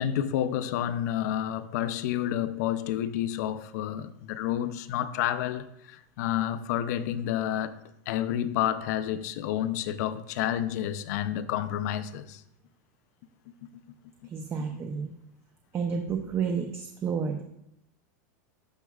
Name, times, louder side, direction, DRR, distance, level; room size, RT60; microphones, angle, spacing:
voice 1, 0.0-7.8 8.1-12.4, left 11 dB, 60° left, 0.6 m, -30 dB
voice 2, 14.2-15.1 15.7-17.4, right 6 dB, 25° right, 0.7 m, -30 dB
11.5 x 5.9 x 2.4 m
supercardioid pair, 140°, 10 cm